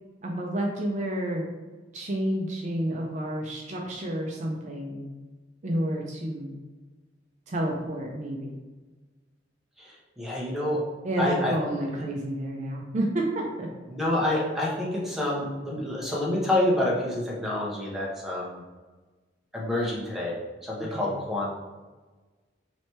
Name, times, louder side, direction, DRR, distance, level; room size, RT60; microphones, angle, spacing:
voice 1, 0.2-1.4 1.9-5.1 5.6-6.6 7.5-8.6 11.0-13.7 20.9-21.1, right 1 dB, 40° right, 0 dB, 0.4 m, -30 dB
voice 2, 9.8-10.8 11.2-11.5 13.9-18.6 19.5-20.4 20.6-21.5, left 1 dB, ahead, -5 dB, 0.8 m, -28 dB
3.2 x 3.0 x 4.2 m, 1.3 s
head